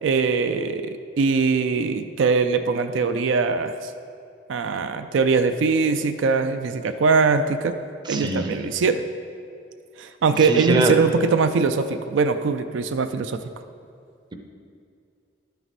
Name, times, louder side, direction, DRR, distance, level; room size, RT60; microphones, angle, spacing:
voice 1, 0.0-3.9 4.5-7.8 8.1-9.0 10.0-13.4, right 4 dB, 80° right, 8 dB, 0.4 m, -22 dB
voice 2, 8.1-8.6 10.5-11.0, right 1 dB, 20° right, 3 dB, 0.5 m, -23 dB
12.0 x 4.6 x 4.1 m, 2.4 s
head